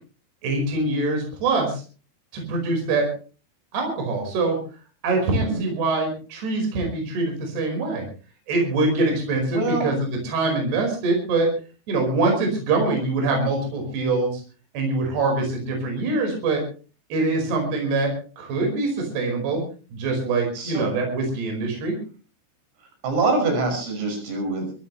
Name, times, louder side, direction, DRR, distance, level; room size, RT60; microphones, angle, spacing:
voice 1, 0.4-1.8 2.3-3.1 3.7-4.6 5.0-8.0 8.5-11.5 11.9-14.4 14.7-16.6 17.1-19.6 19.9-22.0, right 3 dB, 55° right, 2 dB, 6.9 m, -24 dB
voice 2, 5.3-5.6 9.5-9.9 20.5-20.9 23.0-24.7, right 3 dB, 75° right, 3 dB, 8.6 m, -25 dB
23.5 x 16.0 x 3.2 m, 0.37 s
omnidirectional pair, 5.9 m